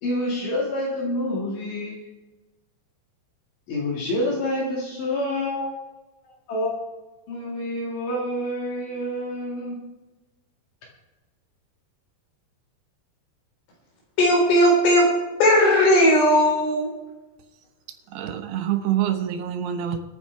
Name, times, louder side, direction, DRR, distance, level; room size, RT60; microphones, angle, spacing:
voice 1, 0.0-2.0 3.7-5.8 6.2-6.8 7.3-9.9, left 1 dB, 60° left, -3 dB, 3.5 m, -28 dB
voice 2, 14.2-15.1 15.4-16.9, equal, 85° left, -3 dB, 6.3 m, -17 dB
voice 3, 18.1-20.0, right 11 dB, 85° right, 7 dB, 3.2 m, -26 dB
25.5 x 9.1 x 3.4 m, 1.1 s
omnidirectional pair, 4.6 m